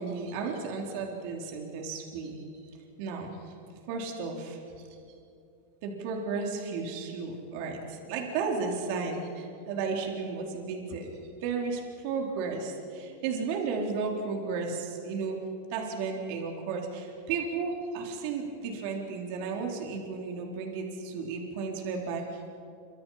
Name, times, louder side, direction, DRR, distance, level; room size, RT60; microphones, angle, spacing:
voice 1, 0.0-2.4 3.0-3.5 3.9-5.0 5.8-11.1 11.4-15.4 15.7-22.6, right 4 dB, 60° right, 1 dB, 4.0 m, -34 dB
28.5 x 26.0 x 5.8 m, 2.6 s
supercardioid pair, 125°, 0 cm